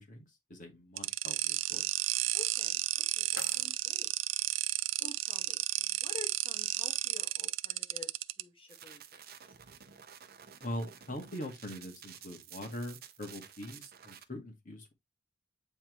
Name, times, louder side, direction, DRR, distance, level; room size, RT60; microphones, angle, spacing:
voice 1, 0.0-1.9 10.6-14.9, left 1 dB, 45° left, 2.0 m, -42 dB
sound 1, 1.0-8.4, right 16 dB, 90° right, 0.4 m, -32 dB
voice 2, 2.3-4.1 5.0-8.1 8.4-9.0, left 4 dB, 30° left, 1.7 m, -51 dB
sound 2, 2.6-4.6, left 8 dB, 75° left, 0.6 m, -51 dB
sound 3, 8.7-14.2, right 8 dB, 55° right, 0.9 m, -52 dB
8.7 x 3.5 x 3.1 m
head